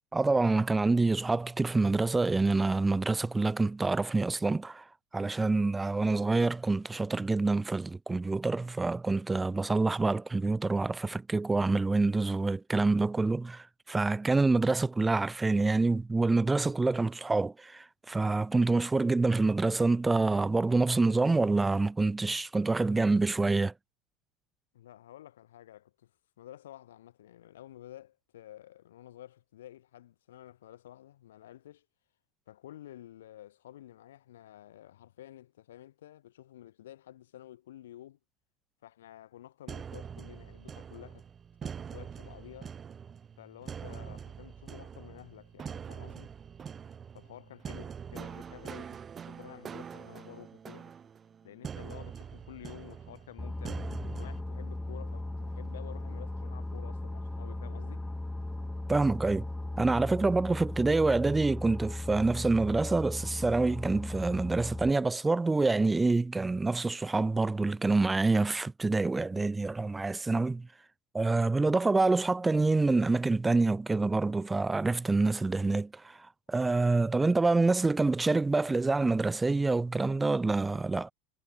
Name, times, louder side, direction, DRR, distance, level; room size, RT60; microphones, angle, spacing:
voice 1, 0.1-4.8 5.1-23.7 58.9-59.5 59.8-70.7 71.1-76.2 76.5-81.1, right 3 dB, 15° right, 0.5 m, -27 dB
voice 2, 24.7-26.1 26.4-31.8 32.5-38.2 38.8-41.2 41.6-42.8 43.4-46.3 47.1-50.9 51.4-58.0, left 12 dB, 75° left, 6.6 m, -51 dB
sound 1, 39.7-54.4, right 7 dB, 30° right, 4.8 m, -44 dB
Boat Water vehicle, 53.4-64.9, left 2 dB, 5° left, 0.9 m, -37 dB
hypercardioid pair, 80°, 0 cm